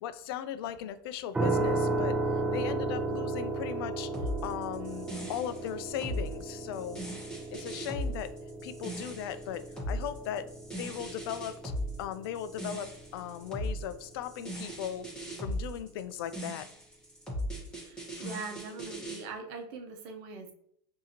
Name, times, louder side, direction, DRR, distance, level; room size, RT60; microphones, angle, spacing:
voice 1, 0.0-2.2 2.5-4.1 4.4-7.0 7.5-8.3 8.6-10.5 10.8-11.7 12.0-15.1 15.4-16.7 18.1-18.4, left 9 dB, 70° left, 12 dB, 0.4 m, -38 dB
sound 1, 1.3-14.2, right 2 dB, 10° right, 0.7 m, -35 dB
sound 2, 4.1-19.2, equal, 5° left, 1.4 m, -38 dB
voice 2, 17.7-20.5, right 4 dB, 60° right, 3 dB, 0.9 m, -42 dB
4.8 x 2.8 x 2.9 m, 0.68 s
supercardioid pair, 135°, 13 cm